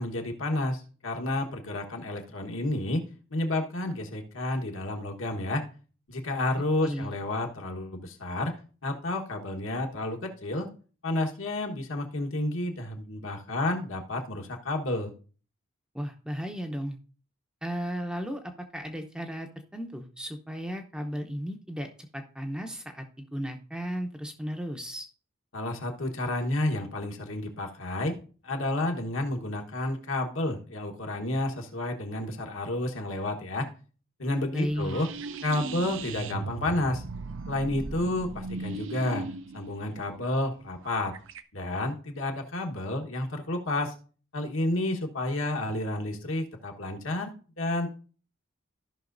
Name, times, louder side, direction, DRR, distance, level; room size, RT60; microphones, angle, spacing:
voice 1, 0.0-3.0 3.3-5.6 6.1-8.5 8.8-10.7 11.0-15.1 25.5-28.1 28.4-33.7 34.2-35.1 35.4-37.0 37.5-39.3 39.5-41.1 41.5-43.9 44.3-47.9, left 1 dB, 70° left, 2 dB, 1.3 m, -30 dB
voice 2, 6.8-7.1 15.9-17.0 17.6-25.1 34.5-34.9, equal, 5° right, 4 dB, 0.6 m, -35 dB
sound 1, 34.7-41.4, right 3 dB, 60° right, 0.5 m, -38 dB
14.5 x 5.7 x 2.6 m, 0.39 s
head